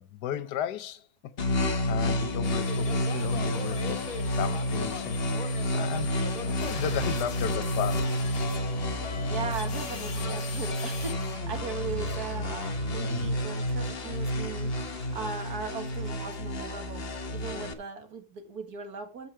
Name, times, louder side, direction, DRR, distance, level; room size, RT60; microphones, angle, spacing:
voice 1, 0.0-4.0 4.3-8.2, left 10 dB, 75° left, 1.3 m, -35 dB
sound 1, 1.4-17.7, left 1 dB, 40° left, 1.1 m, -30 dB
sound 2, 2.4-11.1, left 4 dB, 60° left, 2.0 m, -39 dB
voice 2, 9.2-19.3, right 5 dB, 65° right, 2.1 m, -38 dB
sound 3, 10.4-16.4, right 5 dB, 85° right, 2.8 m, -53 dB
13.5 x 5.7 x 4.4 m
omnidirectional pair, 1.8 m